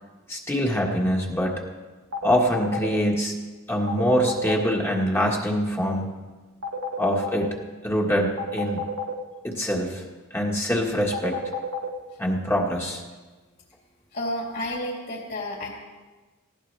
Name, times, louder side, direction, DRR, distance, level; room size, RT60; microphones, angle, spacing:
voice 1, 0.3-1.6 2.2-3.4 3.7-6.1 7.0-7.6 7.8-8.8 9.4-10.0 10.3-11.4 12.2-13.0, equal, 10° left, -1 dB, 1.6 m, -24 dB
sound 1, 2.1-2.9 3.9-4.6 6.6-7.4 8.4-9.1 11.1-11.9, left 1 dB, 80° right, 1.7 m, -29 dB
voice 2, 14.1-15.7, left 1 dB, 50° left, -4 dB, 3.4 m, -31 dB
19.0 x 16.5 x 3.4 m, 1.3 s
head